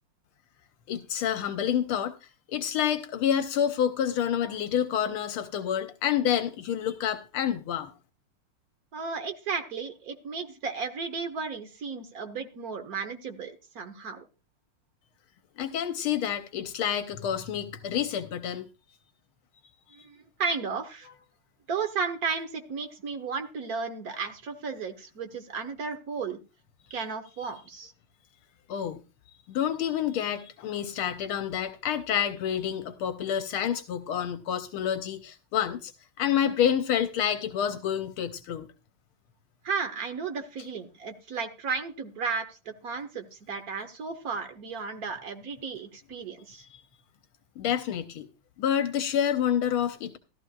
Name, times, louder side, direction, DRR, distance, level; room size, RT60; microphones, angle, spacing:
voice 1, 0.9-2.1 2.5-7.9 15.6-18.6 28.7-29.0 29.5-35.9 36.2-38.7 46.7-46.8 47.6-48.3 48.6-50.2, left 9 dB, 75° left, 1.6 m, -28 dB
voice 2, 8.9-14.2 19.9-21.1 21.7-26.4 26.9-27.9 39.6-46.6, right 5 dB, 50° right, 1.4 m, -34 dB
14.5 x 12.5 x 2.4 m
omnidirectional pair, 2.4 m